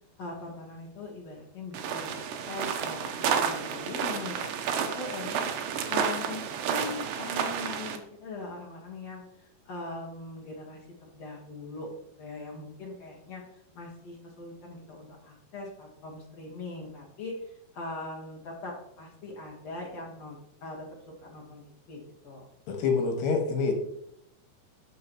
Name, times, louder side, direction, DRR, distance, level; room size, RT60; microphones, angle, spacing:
voice 1, 0.2-5.5 5.9-11.9 12.2-20.9 21.2-22.5, left 2 dB, 55° left, -3 dB, 1.9 m, -41 dB
sound 1, 1.7-8.0, right 7 dB, 75° right, 2.0 m, -31 dB
voice 2, 22.7-23.7, left 4 dB, 75° left, 3 dB, 3.6 m, -26 dB
12.0 x 6.2 x 3.0 m, 0.73 s
omnidirectional pair, 5.1 m